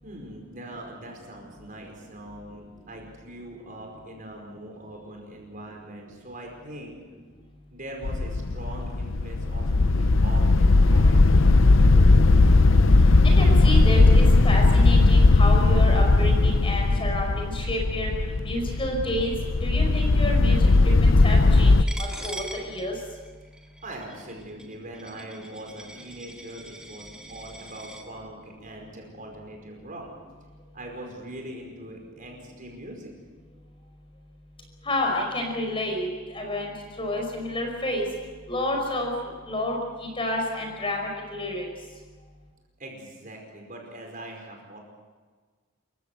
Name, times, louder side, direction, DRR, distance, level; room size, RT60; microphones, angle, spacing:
voice 1, 0.0-7.0 7.7-12.6 23.8-30.1 30.7-33.1 42.8-44.8, right 1 dB, 40° right, 1 dB, 5.1 m, -42 dB
sound 1, 8.0-21.8, left 3 dB, 65° left, 0.7 m, -18 dB
voice 2, 13.3-18.1 18.4-19.3 19.6-20.6 21.0-22.9 34.8-36.7 37.0-38.1 38.5-39.1 39.5-41.6, left 1 dB, 25° left, 1 dB, 5.2 m, -29 dB
Coin (dropping), 21.9-28.0, right 1 dB, 5° right, 2.0 m, -42 dB
27.5 x 15.5 x 8.0 m, 1.4 s
head